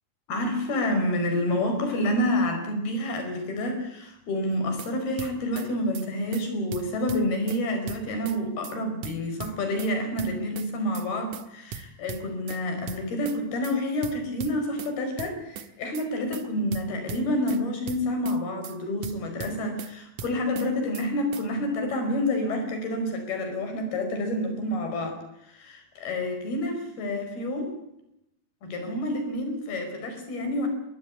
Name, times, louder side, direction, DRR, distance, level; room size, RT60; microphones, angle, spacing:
voice 1, 0.3-27.7 28.6-30.7, left 1 dB, 75° left, 6 dB, 7.0 m, -28 dB
sound 1, 4.5-4.9 5.2-5.7 5.9-6.1 6.3-6.4 6.7-7.6 7.9-8.4 8.6-8.8 9.0-9.9 10.2-10.7 10.9-11.1 11.3-11.4 11.7-12.6 12.9-13.4 13.6-13.8 14.0-14.9 15.2-15.7 15.9-16.1 16.3-16.4 16.7-17.6 17.9-18.4 18.6-18.8 19.0-19.9 20.2-20.7 20.9-21.1 21.3-21.4, right 7 dB, 60° right, 2.5 m, -38 dB
23.0 x 17.5 x 8.4 m, 0.84 s
omnidirectional pair, 4.5 m